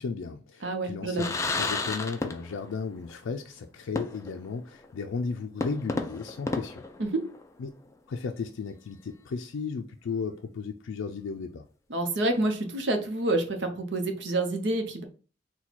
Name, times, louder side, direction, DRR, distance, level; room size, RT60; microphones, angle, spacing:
voice 1, 0.0-6.8 7.6-7.7 8.1-11.6, left 5 dB, 90° left, 0.4 m, -35 dB
voice 2, 0.6-1.2 7.0-7.2 11.9-15.0, right 2 dB, 65° right, 0.7 m, -28 dB
sound 1, 1.2-2.8 3.0-3.1 4.0-4.5 4.8-4.9 5.6-7.6, left 3 dB, 15° left, 0.3 m, -32 dB
4.1 x 2.2 x 4.4 m
head